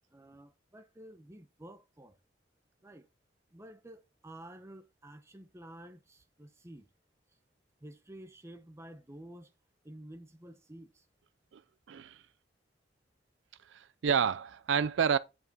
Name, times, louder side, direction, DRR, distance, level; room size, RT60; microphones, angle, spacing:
voice 1, 0.1-2.2 2.8-3.1 3.5-6.9 7.8-9.5 9.8-11.1, right 1 dB, 15° right, 0.8 m, -51 dB
voice 2, 11.9-12.2 13.7-15.2, right 7 dB, 75° right, 0.4 m, -29 dB
7.8 x 5.6 x 3.9 m
head